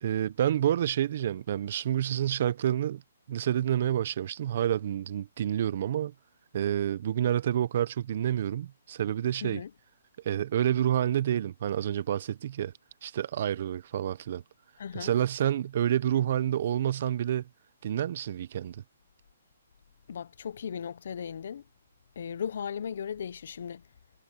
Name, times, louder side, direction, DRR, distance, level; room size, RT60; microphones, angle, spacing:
voice 1, 0.0-3.0 3.3-6.1 6.5-9.6 10.2-12.7 13.0-14.4 14.9-17.4 17.8-18.8, right 10 dB, 50° right, 0.8 m, -28 dB
voice 2, 9.4-9.7 14.8-15.1 20.1-21.6 22.2-23.8, left 7 dB, 60° left, 0.8 m, -36 dB
hypercardioid pair, 155°, 0 cm